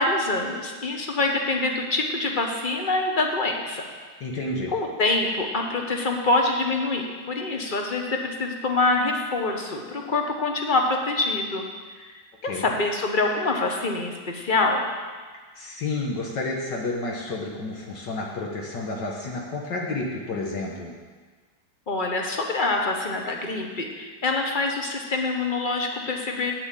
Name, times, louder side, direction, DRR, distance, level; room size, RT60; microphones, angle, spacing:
voice 1, 0.0-3.9 4.7-11.7 12.4-14.9 21.9-26.5, left 2 dB, 30° left, 2 dB, 1.0 m, -25 dB
voice 2, 4.2-4.7 12.5-12.7 15.6-20.9, left 2 dB, 65° left, -1 dB, 1.8 m, -30 dB
9.0 x 7.9 x 7.5 m, 1.5 s
omnidirectional pair, 2.1 m